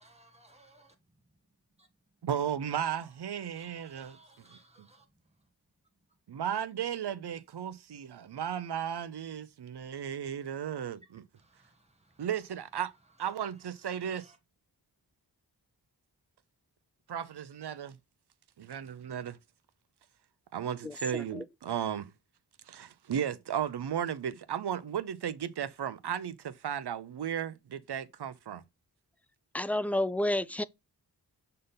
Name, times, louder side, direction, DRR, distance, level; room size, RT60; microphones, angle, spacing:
voice 1, 0.0-1.4 1.8-2.2 2.8-5.5 6.1-6.2 10.6-12.3 12.9-14.4, right 2 dB, 15° right, 1.6 m, -63 dB
voice 2, 2.2-4.2 6.3-11.2 12.2-12.9 13.2-14.3 17.1-18.0 18.6-19.4 20.5-22.1 22.7-28.6, right 9 dB, 70° right, 0.7 m, -35 dB
voice 3, 20.8-21.4 29.5-30.6, left 1 dB, 5° left, 0.3 m, -30 dB
6.6 x 3.8 x 4.0 m
wide cardioid pair, 65°, 40 cm